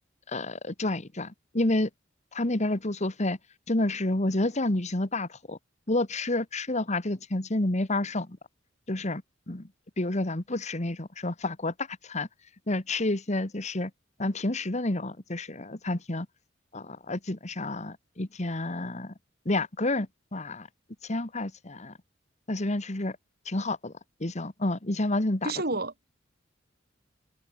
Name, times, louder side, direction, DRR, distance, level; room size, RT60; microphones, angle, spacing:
voice 1, 0.3-1.9 2.3-3.4 3.7-5.6 5.9-8.4 8.9-9.7 10.0-12.3 12.7-13.9 14.2-16.3 16.7-19.1 19.5-20.7 21.0-21.9 22.5-23.2 23.5-23.9 24.2-25.5, left 2 dB, 40° left, 1.7 m, -29 dB
voice 2, 25.4-26.1, right 2 dB, 55° right, 3.3 m, -30 dB
head